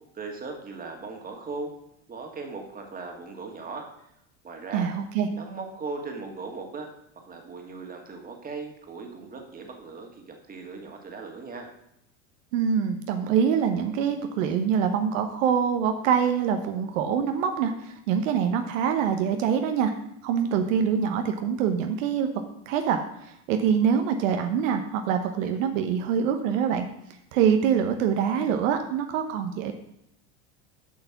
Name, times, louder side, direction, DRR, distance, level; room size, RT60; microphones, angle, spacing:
voice 1, 0.1-1.7 2.1-3.8 4.4-4.9 5.4-6.9 7.2-11.7, right 4 dB, 20° right, 2 dB, 1.9 m, -38 dB
voice 2, 4.7-5.3 12.5-19.9 20.2-22.3 22.7-26.9 27.3-29.7, right 7 dB, 75° right, 6 dB, 1.0 m, -25 dB
7.6 x 5.9 x 5.9 m, 0.77 s
supercardioid pair, 115°, 39 cm